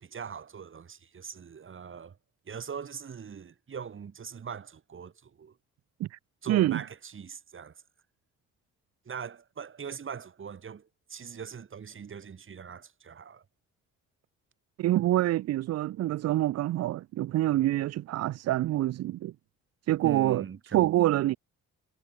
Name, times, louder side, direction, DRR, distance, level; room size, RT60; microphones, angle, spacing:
voice 1, 0.0-2.2 2.5-5.5 6.4-7.8 9.0-13.4 20.0-20.9, right 7 dB, 40° right, 2.7 m, -41 dB
voice 2, 6.5-6.8 14.8-19.3 19.9-20.4 20.7-21.4, right 14 dB, 55° right, 0.5 m, -26 dB
cardioid pair, 90°, 30 cm